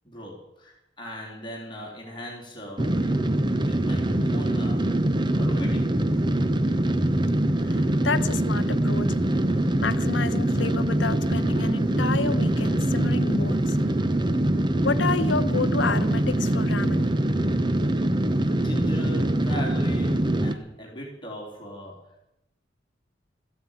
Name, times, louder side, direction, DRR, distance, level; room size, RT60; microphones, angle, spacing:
voice 1, 0.0-3.1 3.6-4.9 5.3-5.9 6.1-6.2 17.8-22.0, equal, 25° left, -2 dB, 3.5 m, -39 dB
sound 1, 2.8-20.5, right 1 dB, 25° right, 0.8 m, -23 dB
voice 2, 8.0-9.1 9.8-13.8 14.8-17.1, left 4 dB, 75° left, 10 dB, 1.0 m, -30 dB
14.0 x 9.4 x 8.9 m, 0.88 s
head